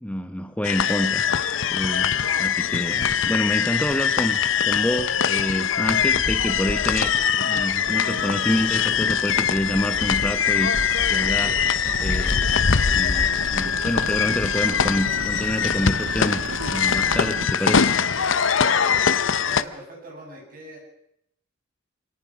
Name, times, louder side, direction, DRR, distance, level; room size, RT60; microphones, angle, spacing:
voice 1, 0.0-4.4 4.7-7.1 7.4-11.7 12.0-12.6 12.9-16.4 16.7-17.9, equal, 5° left, 7 dB, 0.9 m, -28 dB
sound 1, 0.6-19.6, left 7 dB, 70° left, 0.8 m, -22 dB
sound 2, 7.9-17.4, right 4 dB, 70° right, 0.7 m, -35 dB
voice 2, 19.3-20.8, right 1 dB, 45° right, 1 dB, 7.3 m, -42 dB
25.0 x 18.0 x 6.2 m, 0.77 s
head